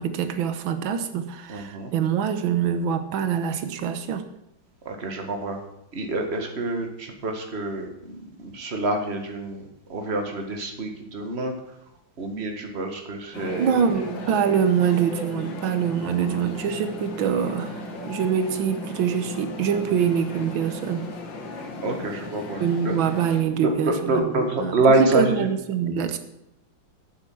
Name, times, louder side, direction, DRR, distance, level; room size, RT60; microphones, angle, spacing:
voice 1, 0.0-4.2 13.6-21.1 22.6-24.7 25.0-26.2, right 8 dB, 90° right, 9 dB, 1.7 m, -24 dB
voice 2, 1.5-1.9 4.9-5.6 5.9-9.6 9.9-11.5 12.2-13.9 21.8-23.0 23.5-25.5, right 2 dB, 35° right, 3 dB, 1.8 m, -26 dB
sound 1, 13.3-23.4, left 2 dB, 70° left, 2.2 m, -36 dB
8.9 x 7.9 x 7.6 m, 0.85 s
omnidirectional pair, 2.1 m